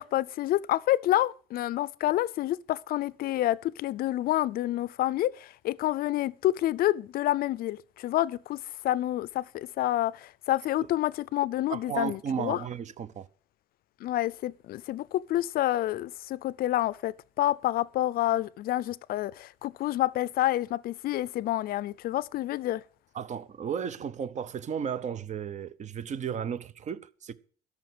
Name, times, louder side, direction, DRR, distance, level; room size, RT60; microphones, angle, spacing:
voice 1, 0.0-12.6 14.0-22.8, left 14 dB, 60° left, 0.5 m, -28 dB
voice 2, 11.7-13.3 23.1-27.3, right 7 dB, 45° right, 0.8 m, -34 dB
12.5 x 5.7 x 7.7 m
cardioid pair, 110°, 17 cm